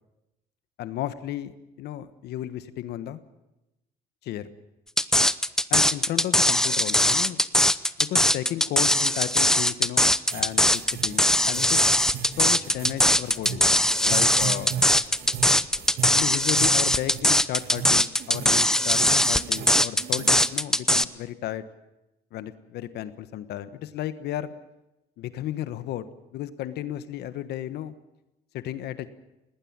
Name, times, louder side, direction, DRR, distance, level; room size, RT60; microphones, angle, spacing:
voice 1, 0.8-3.2 4.2-4.5 5.7-7.4 8.0-11.9 12.4-13.7 14.0-14.7 16.1-21.6 22.3-24.5 25.2-26.1 26.3-27.9 28.5-29.1, left 12 dB, 75° left, 13 dB, 1.3 m, -34 dB
sound 1, 5.0-21.0, left 1 dB, 5° left, 0.7 m, -21 dB
sound 2, 9.6-18.3, left 3 dB, 25° left, 5.1 m, -51 dB
sound 3, 10.3-20.5, right 8 dB, 70° right, 1.6 m, -37 dB
20.0 x 19.0 x 8.8 m, 0.94 s
cardioid pair, 110°, 17 cm